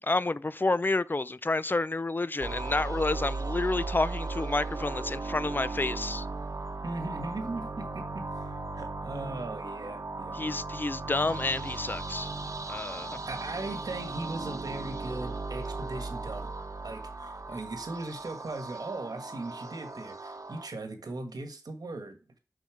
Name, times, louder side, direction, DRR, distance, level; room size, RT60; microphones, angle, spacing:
voice 1, 0.0-6.3 10.3-12.3 12.7-13.2, left 2 dB, 30° left, 0.4 m, -29 dB
sound 1, 2.4-20.7, right 3 dB, 60° right, 1.0 m, -37 dB
voice 2, 6.8-10.4 13.3-16.5 16.8-22.4, right 2 dB, 80° right, 1.5 m, -38 dB
6.3 x 5.6 x 5.0 m
wide cardioid pair, 65°, 7 cm